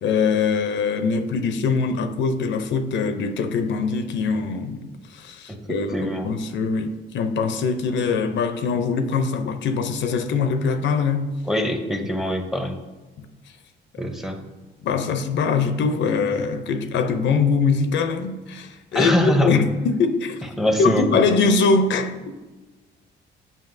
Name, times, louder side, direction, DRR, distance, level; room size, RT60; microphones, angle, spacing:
voice 1, 0.0-11.3 14.8-20.4 20.8-22.3, left 5 dB, 65° left, 0.5 m, -22 dB
voice 2, 5.9-6.3 11.5-12.8 14.0-14.4 18.9-19.6 20.6-21.2, equal, ahead, 0.6 m, -23 dB
7.4 x 5.3 x 2.6 m
cardioid pair, 90°, 20 cm